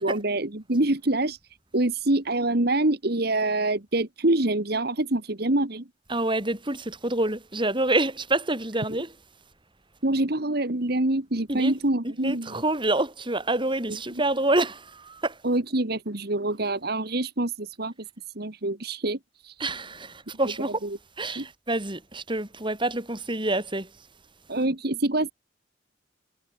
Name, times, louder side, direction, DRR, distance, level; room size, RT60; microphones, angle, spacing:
voice 1, 0.0-1.4 1.7-5.9 10.0-12.6 13.9-14.2 15.4-17.9 18.4-19.6 20.8-21.0 21.4-21.5 24.5-25.3, right 2 dB, 55° right, 1.9 m, -25 dB
voice 2, 6.1-9.1 11.5-11.7 12.2-15.4 19.6-20.9 21.2-23.9, right 2 dB, 25° right, 5.6 m, -27 dB
head